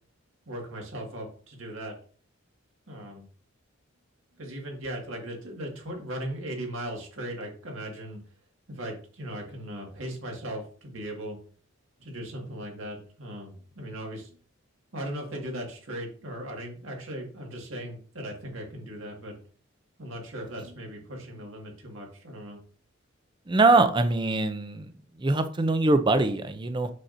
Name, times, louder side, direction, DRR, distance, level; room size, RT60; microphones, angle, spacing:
voice 1, 0.5-1.9 2.9-3.3 4.4-8.2 8.7-11.4 12.0-14.3 14.9-19.4 20.0-22.6, right 1 dB, 70° right, 1 dB, 1.9 m, -38 dB
voice 2, 23.5-24.9 25.2-26.9, right 2 dB, 20° right, 9 dB, 0.5 m, -23 dB
6.3 x 5.8 x 2.6 m, 0.43 s
head